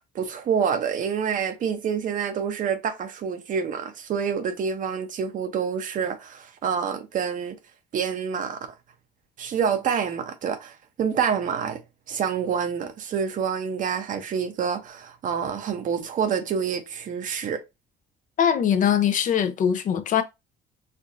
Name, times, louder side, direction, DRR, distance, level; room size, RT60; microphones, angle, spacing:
voice 1, 0.1-7.6 7.9-8.7 9.4-11.8 12.1-17.6, right 7 dB, 50° right, 0.7 m, -27 dB
voice 2, 18.4-20.2, left 8 dB, 50° left, 0.5 m, -21 dB
4.4 x 2.5 x 2.5 m
cardioid pair, 110°, 17 cm